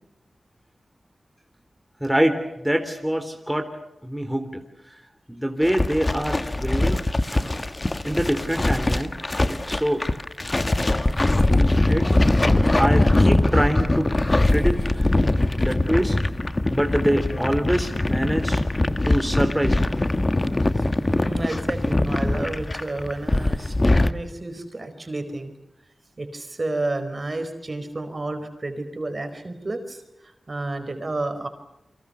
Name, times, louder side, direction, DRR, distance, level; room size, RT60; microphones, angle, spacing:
voice 1, 2.0-3.7 4.0-4.6 5.3-7.0 7.3-7.5 8.0-9.1 9.5-10.1 11.5-12.1 12.4-14.1 14.5-15.2 15.6-16.2 16.7-18.6 19.0-19.9, equal, 5° right, 5 dB, 3.4 m, -25 dB
sound 1, 5.6-24.1, left 2 dB, 30° left, 1.4 m, -22 dB
voice 2, 20.7-25.5 26.2-31.5, right 2 dB, 40° right, 8 dB, 4.8 m, -31 dB
29.5 x 24.5 x 7.0 m, 0.88 s
cardioid pair, 60°, 0 cm